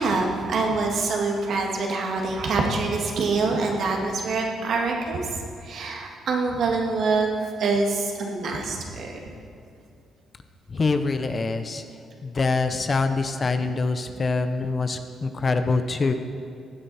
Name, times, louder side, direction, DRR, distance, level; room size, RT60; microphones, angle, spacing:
voice 1, 0.0-9.3 14.8-14.9, right 3 dB, 65° right, 0 dB, 2.0 m, -25 dB
voice 2, 10.7-11.8 12.2-16.1, left 3 dB, 35° left, 8 dB, 0.8 m, -25 dB
15.5 x 9.0 x 4.3 m, 2.6 s
cardioid pair, 90°, 0 cm